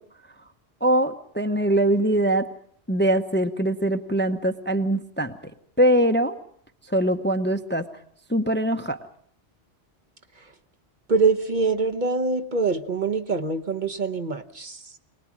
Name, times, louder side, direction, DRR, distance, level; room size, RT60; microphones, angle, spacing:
voice 1, 0.8-2.5 2.9-5.3 5.8-6.4 6.9-7.8 8.3-9.0, right 1 dB, 10° left, 7 dB, 0.8 m, -22 dB
voice 2, 11.1-14.9, right 4 dB, 45° right, 6 dB, 1.2 m, -24 dB
24.5 x 19.5 x 7.3 m, 0.63 s
omnidirectional pair, 1.1 m